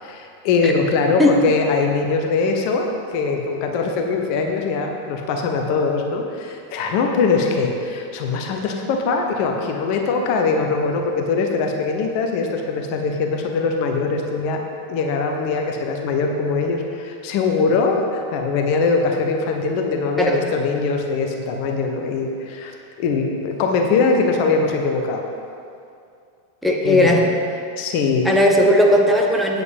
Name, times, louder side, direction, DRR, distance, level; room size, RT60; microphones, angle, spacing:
voice 1, 0.0-14.6 14.9-25.2 26.8-27.2 27.8-28.3, left 4 dB, 45° left, 3 dB, 1.0 m, -22 dB
voice 2, 26.6-27.2 28.2-29.6, left 1 dB, ahead, -1 dB, 1.1 m, -16 dB
8.9 x 8.2 x 5.3 m, 2.4 s
figure-of-eight pair, 90°, 0 cm